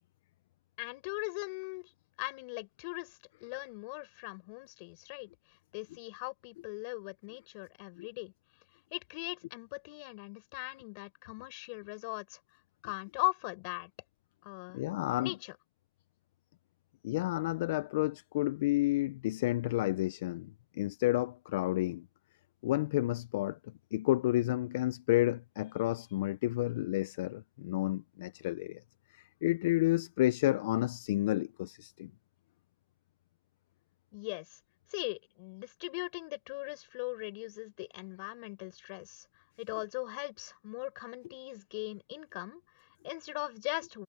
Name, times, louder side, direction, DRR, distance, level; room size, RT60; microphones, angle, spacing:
voice 1, 0.8-1.9 2.2-5.3 5.7-8.3 8.9-12.4 12.8-13.9 14.4-14.8 15.2-15.6 34.1-34.6 34.9-39.2 39.6-44.0, left 31 dB, 55° left, 6.7 m, -40 dB
voice 2, 14.7-15.3 17.0-22.1 22.6-23.6 23.9-28.8 29.1-32.1, left 16 dB, 75° left, 0.5 m, -30 dB
supercardioid pair, 155°, 0 cm